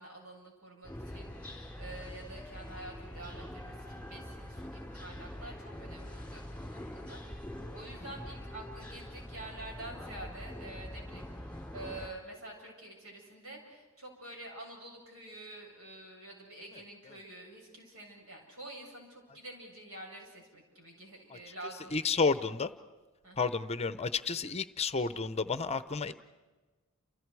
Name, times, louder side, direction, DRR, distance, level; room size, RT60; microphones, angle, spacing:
voice 1, 0.0-22.3 23.2-23.5, right 1 dB, 75° right, -1 dB, 7.9 m, -48 dB
sound 1, 0.8-12.1, left 1 dB, 5° left, 3.9 m, -44 dB
voice 2, 21.9-22.7 23.4-26.1, left 4 dB, 30° left, 13 dB, 0.7 m, -31 dB
29.5 x 28.5 x 4.8 m, 1.2 s
head